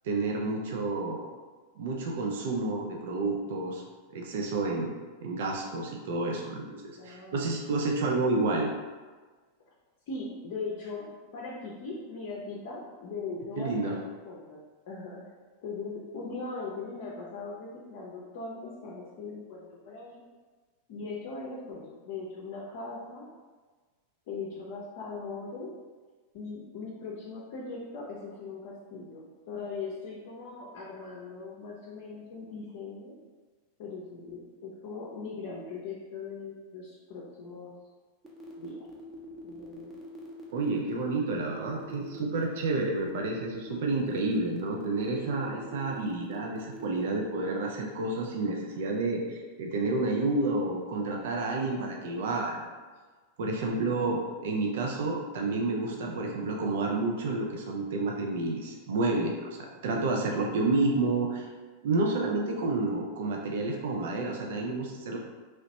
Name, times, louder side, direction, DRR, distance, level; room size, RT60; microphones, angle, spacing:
voice 1, 0.0-1.3 1.8-3.8 4.1-4.9 5.2-8.7 13.6-14.0 40.5-52.7 53.4-61.5 61.8-65.2, right 2 dB, 55° right, 0 dB, 0.4 m, -30 dB
voice 2, 7.0-7.5 10.1-15.2 15.6-20.2 20.9-23.3 24.3-25.7 26.3-33.1 33.8-37.7 38.6-38.9 39.4-40.0, left 4 dB, 50° left, -4 dB, 0.6 m, -40 dB
sound 1, 38.2-47.6, right 1 dB, 15° right, 0.7 m, -44 dB
3.1 x 2.9 x 2.8 m, 1.4 s
figure-of-eight pair, 90°, 0 cm